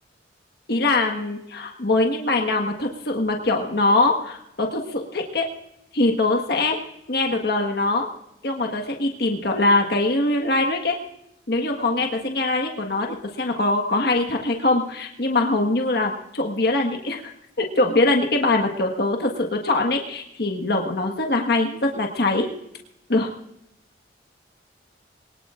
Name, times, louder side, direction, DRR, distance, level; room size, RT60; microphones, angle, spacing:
voice 1, 0.7-5.4 5.9-6.8 7.1-8.1 8.4-11.0 11.5-17.3 17.6-22.5 23.1-23.3, left 2 dB, 60° left, 2 dB, 1.5 m, -22 dB
22.0 x 19.5 x 2.5 m, 0.79 s
head